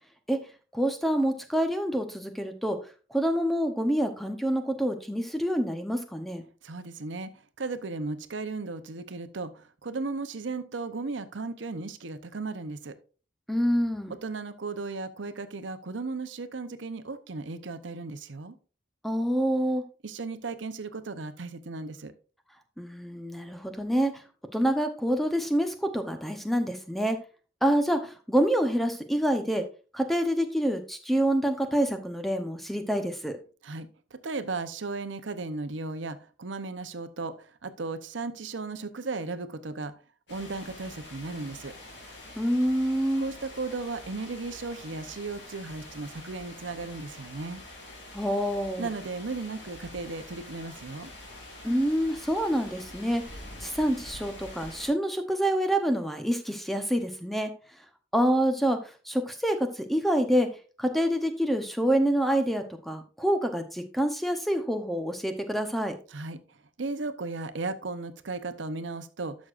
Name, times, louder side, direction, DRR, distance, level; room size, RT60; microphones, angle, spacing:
voice 1, 0.7-2.8 3.1-6.4 13.5-14.2 19.0-19.8 22.8-24.2 24.5-27.2 27.6-29.6 29.9-33.4 42.4-43.2 48.1-48.9 51.6-57.5 58.1-58.8 59.0-60.5 60.8-65.9, equal, ahead, 6 dB, 0.8 m, -27 dB
voice 2, 6.6-13.0 14.1-18.6 20.0-22.1 33.6-39.9 40.3-41.7 43.2-47.6 48.8-51.1 66.1-69.4, right 3 dB, 80° right, 11 dB, 0.8 m, -36 dB
sound 1, 40.3-54.9, left 1 dB, 65° left, 4.1 m, -46 dB
12.0 x 6.3 x 2.5 m, 0.36 s
head